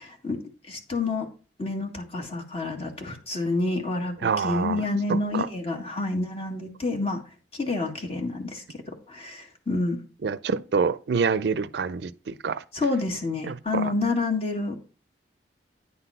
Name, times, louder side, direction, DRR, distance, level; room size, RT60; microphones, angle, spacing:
voice 1, 0.7-1.3 1.6-7.2 7.6-8.8 9.1-10.0 12.7-14.7, left 3 dB, 35° left, 1.7 m, -28 dB
voice 2, 4.2-5.5 10.2-12.6 13.5-13.9, right 5 dB, 65° right, 0.4 m, -27 dB
9.6 x 4.0 x 5.6 m
head